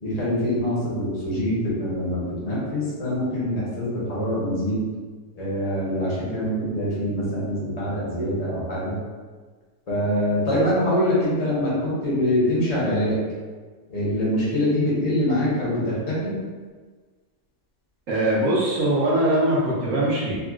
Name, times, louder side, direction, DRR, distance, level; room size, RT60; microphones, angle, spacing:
voice 1, 0.0-2.2 2.4-4.8 5.3-8.9 9.9-13.2 13.9-16.3, left 1 dB, 30° left, -8 dB, 0.8 m, -24 dB
voice 2, 18.1-20.4, right 1 dB, 60° right, -6 dB, 1.0 m, -21 dB
3.7 x 2.2 x 2.4 m, 1.4 s
omnidirectional pair, 1.8 m